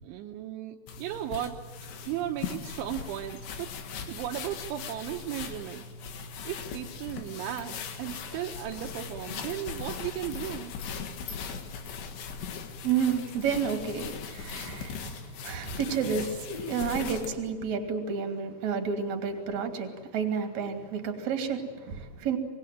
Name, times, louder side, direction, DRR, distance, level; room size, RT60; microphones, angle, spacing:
voice 1, 0.0-1.6 2.1-3.7 3.9-5.8 6.1-10.7, right 11 dB, 75° right, 3 dB, 3.3 m, -36 dB
sound 1, 0.9-17.4, left 6 dB, 65° left, 3.9 m, -39 dB
voice 2, 12.8-22.4, right 6 dB, 40° right, 5 dB, 3.5 m, -31 dB
25.5 x 21.0 x 9.4 m, 1.2 s
omnidirectional pair, 5.6 m